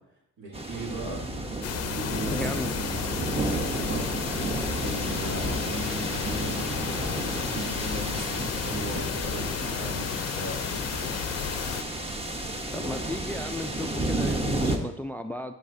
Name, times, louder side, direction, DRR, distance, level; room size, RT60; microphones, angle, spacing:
voice 1, 0.4-1.3 1.9-3.0 3.5-4.1 4.8-10.8, right 1 dB, 70° right, -2 dB, 2.9 m, -38 dB
sound 1, 0.5-14.8, right 2 dB, 20° right, 1.0 m, -32 dB
sound 2, 1.6-11.8, left 10 dB, 55° left, 0.6 m, -33 dB
voice 2, 2.3-2.7 12.7-15.5, left 1 dB, 5° left, 9 dB, 0.3 m, -34 dB
11.5 x 6.7 x 2.7 m, 0.80 s
cardioid pair, 90°, 30 cm